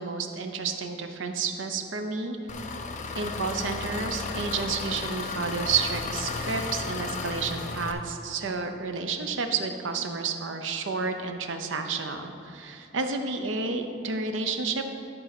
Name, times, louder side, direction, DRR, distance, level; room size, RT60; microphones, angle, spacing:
voice 1, 0.0-2.4 3.2-14.8, right 4 dB, 75° right, 6 dB, 0.7 m, -30 dB
Engine, 2.5-7.9, left 3 dB, 40° left, 0.5 m, -34 dB
11.0 x 3.9 x 6.0 m, 2.8 s
head